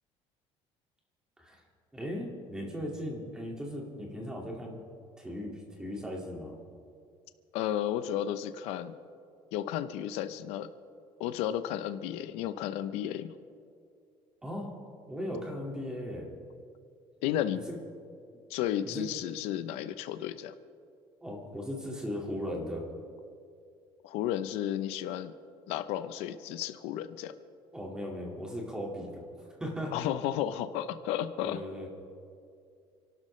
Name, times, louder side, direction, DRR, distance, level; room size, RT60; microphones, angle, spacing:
voice 1, 1.9-4.8 5.2-6.5 14.4-14.7 15.1-16.3 18.8-19.1 21.2-22.8 27.7-29.2 29.6-29.9 31.4-31.9, equal, 5° right, -1 dB, 2.1 m, -37 dB
voice 2, 7.5-9.0 9.5-10.7 11.2-13.3 17.2-17.7 18.5-20.5 24.0-25.3 25.7-27.3 29.9-31.6, left 11 dB, 90° left, 11 dB, 0.7 m, -33 dB
28.5 x 12.0 x 3.3 m, 2.4 s
cardioid pair, 175°, 10 cm